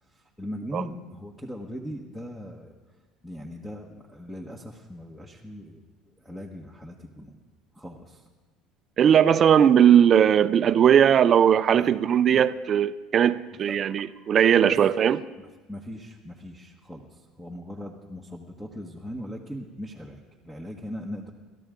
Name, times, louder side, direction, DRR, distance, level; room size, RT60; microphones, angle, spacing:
voice 1, 0.1-2.7 3.2-5.8 6.2-7.4 7.7-8.2 11.7-11.9 12.3-12.4 13.6-13.8 14.6-14.8 15.4-21.3, equal, 5° left, 1.4 m, -39 dB
voice 2, 9.0-15.2, right 9 dB, 40° right, 0.6 m, -19 dB
28.5 x 13.0 x 3.8 m
supercardioid pair, 110°, 0 cm